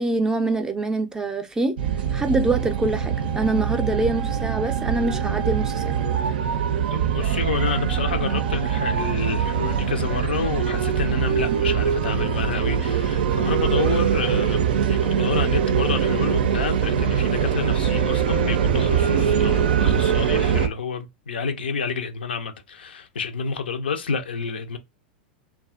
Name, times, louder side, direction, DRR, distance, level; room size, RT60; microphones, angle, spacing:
voice 1, 0.0-1.8 2.1-5.9, right 2 dB, 10° right, 0.4 m, -25 dB
sound 1, 1.8-20.7, right 8 dB, 75° right, 0.4 m, -23 dB
voice 2, 6.9-24.8, left 5 dB, 85° left, 0.5 m, -29 dB
2.6 x 2.2 x 2.4 m
hypercardioid pair, 100°, 5 cm